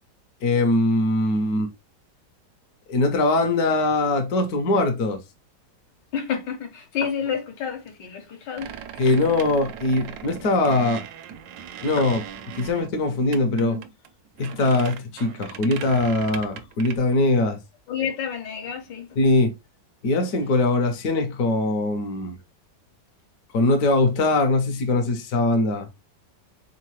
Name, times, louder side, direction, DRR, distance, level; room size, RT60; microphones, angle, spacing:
voice 1, 0.4-1.7 2.9-5.2 9.0-11.0 11.8-12.2 12.6-13.8 14.4-17.6 19.2-19.5 20.0-22.4 23.5-25.9, left 2 dB, 65° left, 1.2 m, -21 dB
voice 2, 6.1-8.8 12.0-12.1 17.9-19.2, left 7 dB, 80° left, 1.6 m, -29 dB
sound 1, 8.6-17.0, right 7 dB, 75° right, 1.1 m, -38 dB
3.7 x 3.6 x 3.1 m
omnidirectional pair, 1.9 m